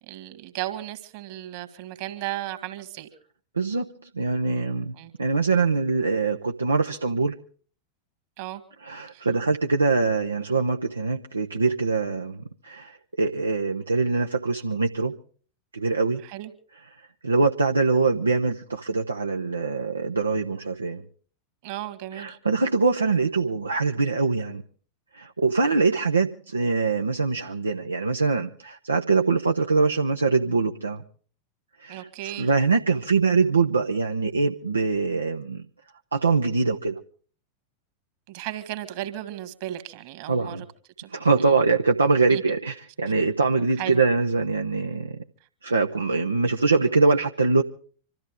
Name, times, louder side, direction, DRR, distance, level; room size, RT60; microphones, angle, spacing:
voice 1, 0.1-3.1 5.0-5.1 8.4-8.6 9.1-9.3 16.2-16.5 21.6-22.4 31.9-32.5 38.3-40.7 41.0-41.1 41.4-41.5 42.3-42.4 43.8-44.0, right 14 dB, 50° right, 1.9 m, -35 dB
voice 2, 3.6-3.9 4.1-7.4 8.8-15.2 15.7-16.2 17.2-21.0 22.1-24.6 25.1-31.0 31.8-35.6 36.1-37.0 40.3-40.6 41.1-45.2 45.6-47.6, right 4 dB, 80° right, 0.7 m, -23 dB
26.0 x 13.5 x 3.7 m
figure-of-eight pair, 90°, 0 cm